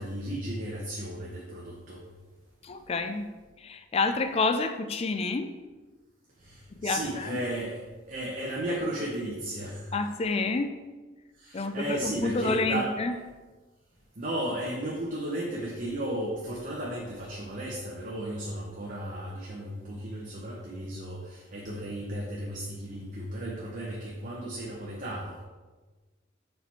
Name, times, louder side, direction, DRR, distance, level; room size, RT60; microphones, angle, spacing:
voice 1, 0.0-2.0 6.4-7.8 8.1-9.9 11.4-12.9 14.2-25.4, right 1 dB, 45° right, -3 dB, 0.9 m, -34 dB
voice 2, 2.6-3.3 3.6-5.5 6.8-7.4 9.9-10.8 11.5-13.2, left 3 dB, 30° left, 8 dB, 0.4 m, -29 dB
6.7 x 4.5 x 4.2 m, 1.3 s
head